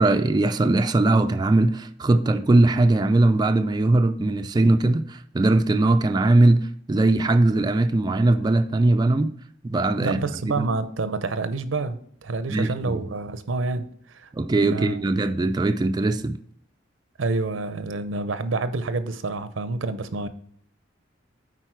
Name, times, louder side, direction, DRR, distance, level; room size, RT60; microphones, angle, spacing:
voice 1, 0.0-9.3 9.6-10.2 10.4-10.7 12.5-13.0 14.3-16.4, right 2 dB, 20° right, 0.3 m, -20 dB
voice 2, 10.0-14.3 14.7-15.0 17.2-20.3, right 3 dB, 85° right, 0.6 m, -28 dB
9.1 x 4.1 x 4.5 m
head